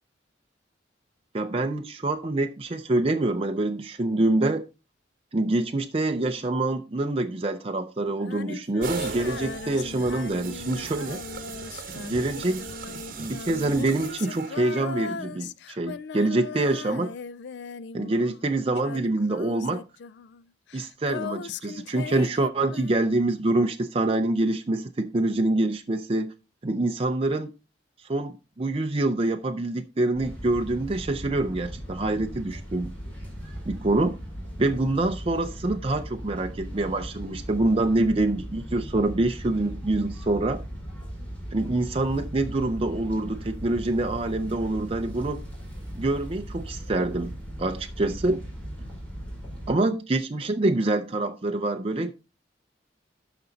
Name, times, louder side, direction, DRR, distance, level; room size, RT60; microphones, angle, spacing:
voice 1, 1.3-4.6 5.3-11.2 12.0-12.7 13.2-17.1 17.9-19.8 20.7-26.3 26.6-27.5 28.0-32.9 33.7-34.2 34.6-40.6 41.5-45.4 45.9-47.3 47.6-48.4 49.7-52.1, right 2 dB, 30° right, 0.6 m, -26 dB
Female singing, 8.1-18.5 18.7-23.2, left 6 dB, 65° left, 0.4 m, -39 dB
sound 1, 8.8-14.8, right 4 dB, 50° right, 1.3 m, -38 dB
sound 2, 30.1-49.7, equal, 10° left, 4.6 m, -38 dB
12.5 x 5.1 x 4.0 m
head